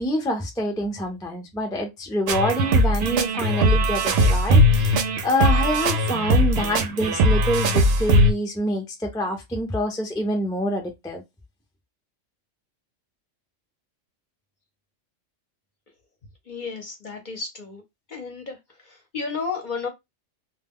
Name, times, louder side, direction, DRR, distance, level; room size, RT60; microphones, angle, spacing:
voice 1, 0.0-11.2, equal, 5° left, 0.3 m, -26 dB
sound 1, 2.3-8.3, equal, 65° right, 0.7 m, -19 dB
voice 2, 16.5-17.8 18.1-18.6 18.8-19.9, left 5 dB, 45° left, 0.7 m, -32 dB
2.2 x 2.2 x 3.5 m
omnidirectional pair, 1.3 m